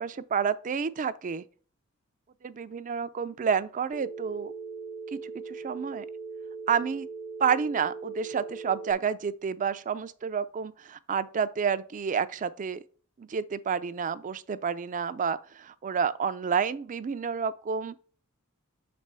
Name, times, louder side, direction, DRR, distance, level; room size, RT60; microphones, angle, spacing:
voice 1, 0.0-1.4 2.4-4.5 5.1-6.1 6.7-7.1 7.4-12.8 13.2-18.0, right 6 dB, 35° right, 0.4 m, -29 dB
Telephone, 3.9-8.9, right 4 dB, 25° left, 0.6 m, -40 dB
5.9 x 4.3 x 4.7 m
head